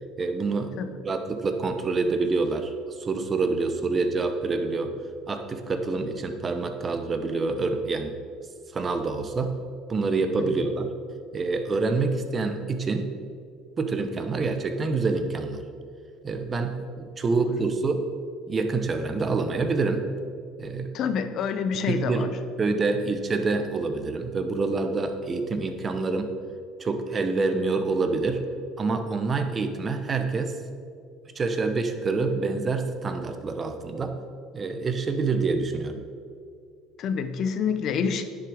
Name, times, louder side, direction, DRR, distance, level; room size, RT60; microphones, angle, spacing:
voice 1, 0.2-0.8 1.0-4.9 5.3-8.2 8.7-9.5 9.9-10.9 11.3-13.1 13.8-15.6 16.2-18.1 18.5-20.1 20.6-20.9 21.9-22.3 22.6-26.3 26.8-28.4 28.8-30.6 31.3-34.2 34.5-36.0, right 3 dB, 25° right, 7 dB, 0.8 m, -27 dB
voice 2, 20.9-22.3 37.0-38.2, left 6 dB, 50° left, 9 dB, 0.7 m, -27 dB
10.5 x 6.2 x 4.9 m, 2.3 s
cardioid pair, 125°, 0 cm